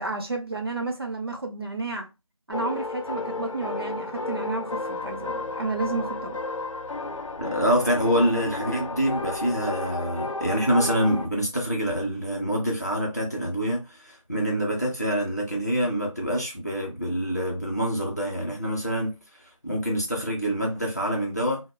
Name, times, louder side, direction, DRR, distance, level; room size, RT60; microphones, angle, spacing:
voice 1, 0.0-2.1 2.5-6.4, right 3 dB, 45° right, 0.5 m, -31 dB
sound 1, 2.5-11.3, left 3 dB, 70° left, 0.6 m, -32 dB
voice 2, 7.4-19.1 19.6-21.6, equal, 30° left, 0.6 m, -26 dB
2.1 x 2.1 x 3.2 m
figure-of-eight pair, 175°, 17 cm